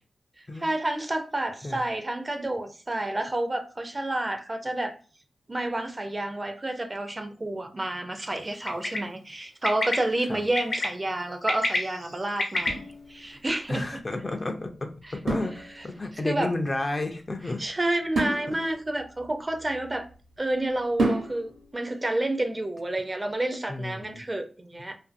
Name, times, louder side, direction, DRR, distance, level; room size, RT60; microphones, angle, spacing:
voice 1, 0.4-4.9 5.5-12.8 13.1-13.9 15.0-15.1 15.8-15.9 16.2-16.5 17.6-20.1 20.4-24.9, right 1 dB, 30° right, 0.4 m, -29 dB
Bird, 8.7-9.0 9.6-9.9 10.6-10.9 11.3-12.7, left 2 dB, 65° left, 0.9 m, -27 dB
sound 1, 12.7-13.6 15.3-16.2 18.1-20.1 21.0-21.7, right 2 dB, 80° right, 0.9 m, -31 dB
voice 2, 13.7-17.8 18.5-18.6 23.7-24.2, left 2 dB, 35° left, 0.4 m, -32 dB
2.5 x 2.5 x 2.4 m
cardioid pair, 60°, 0 cm